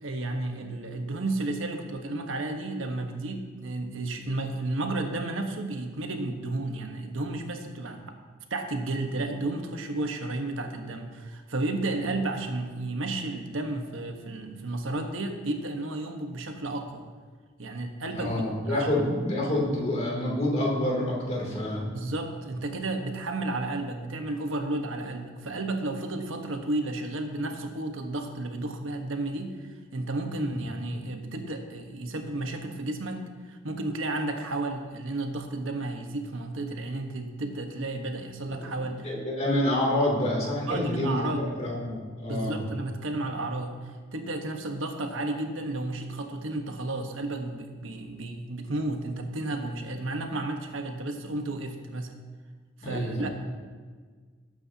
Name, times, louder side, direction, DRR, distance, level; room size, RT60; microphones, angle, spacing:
voice 1, 0.0-8.0 8.5-17.1 17.6-18.9 21.9-39.1 40.7-41.5 42.3-52.1 52.8-53.3, right 2 dB, 80° right, 4 dB, 1.3 m, -32 dB
voice 2, 18.1-21.9 30.3-30.5 38.6-41.3 41.6-42.6 52.8-53.3, left 1 dB, 35° left, -3 dB, 2.9 m, -28 dB
18.5 x 8.8 x 2.9 m, 1.5 s
head